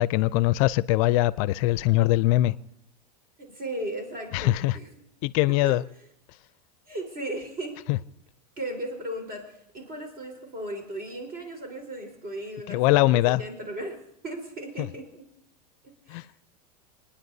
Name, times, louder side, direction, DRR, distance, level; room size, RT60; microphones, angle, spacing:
voice 1, 0.0-2.5 4.3-4.8 5.2-5.8 7.9-8.0 12.7-13.4 14.8-14.9 16.1-16.3, left 17 dB, 60° left, 0.4 m, -22 dB
voice 2, 3.4-4.9 5.6-5.7 6.9-7.8 8.6-14.0 14.2-15.2 16.1-16.2, right 1 dB, 45° right, 4.2 m, -36 dB
29.5 x 9.9 x 2.7 m
hypercardioid pair, 100°, 21 cm